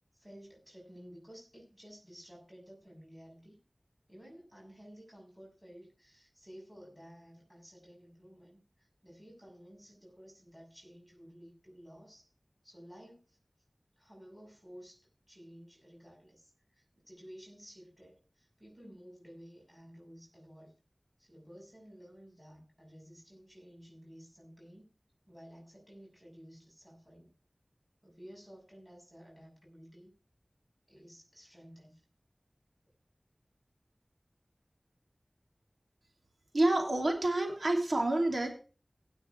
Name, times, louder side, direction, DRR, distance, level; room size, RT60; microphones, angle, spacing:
voice 1, 0.1-3.6 4.1-12.3 12.6-13.4 14.0-20.7 21.2-24.9 25.3-27.3 28.0-30.1 30.9-32.0, equal, ahead, -1 dB, 6.6 m, -54 dB
voice 2, 36.5-38.5, right 2 dB, 90° right, 2 dB, 3.0 m, -28 dB
18.0 x 6.7 x 4.6 m, 0.37 s
wide cardioid pair, 50°, 0 cm